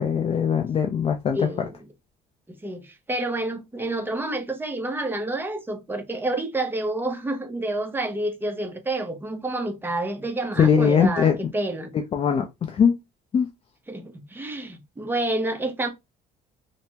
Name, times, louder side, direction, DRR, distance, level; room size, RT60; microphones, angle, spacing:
voice 1, 0.0-1.4 10.6-11.3 12.1-12.9 13.3-13.5, left 7 dB, 35° left, 0.4 m, -20 dB
voice 2, 1.3-1.9 2.5-11.9 13.9-15.9, right 2 dB, 10° right, 0.7 m, -29 dB
3.3 x 2.0 x 2.8 m
cardioid pair, 110°, 17 cm